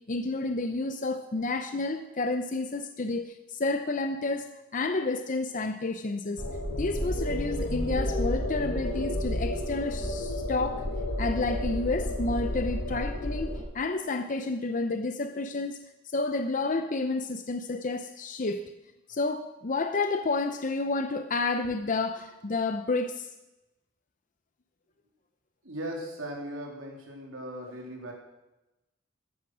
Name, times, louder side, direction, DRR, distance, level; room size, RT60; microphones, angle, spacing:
voice 1, 0.0-6.4 6.8-10.9 11.2-15.8 16.1-18.7 19.1-23.3, left 3 dB, 40° left, 8 dB, 0.6 m, -30 dB
sound 1, 6.4-13.6, left 1 dB, 85° left, 3.7 m, -31 dB
voice 2, 25.6-28.1, right 1 dB, 85° right, 0 dB, 3.4 m, -38 dB
13.5 x 11.0 x 6.3 m, 0.99 s
head